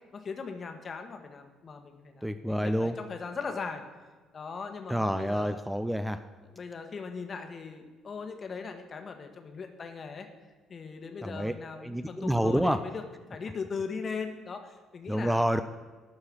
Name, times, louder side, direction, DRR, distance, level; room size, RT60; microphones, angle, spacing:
voice 1, 0.1-3.8 4.3-5.7 6.4-10.3 10.7-13.0 13.3-15.4, left 5 dB, 40° left, 5 dB, 1.3 m, -39 dB
voice 2, 2.2-3.0 4.9-6.2 11.2-12.8 15.1-15.6, equal, 5° right, 10 dB, 0.5 m, -28 dB
12.0 x 4.8 x 8.4 m, 1.3 s
figure-of-eight pair, 50°, 0 cm